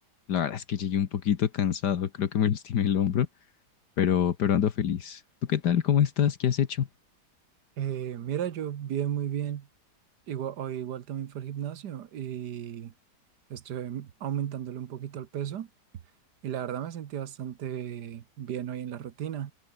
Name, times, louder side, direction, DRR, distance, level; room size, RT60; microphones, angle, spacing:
voice 1, 0.3-3.3 4.0-5.2 5.5-6.9, left 9 dB, 75° left, 1.8 m, -25 dB
voice 2, 7.8-9.7 10.3-12.9 13.5-15.7 16.4-19.5, right 10 dB, 75° right, 1.7 m, -34 dB
omnidirectional pair, 1.8 m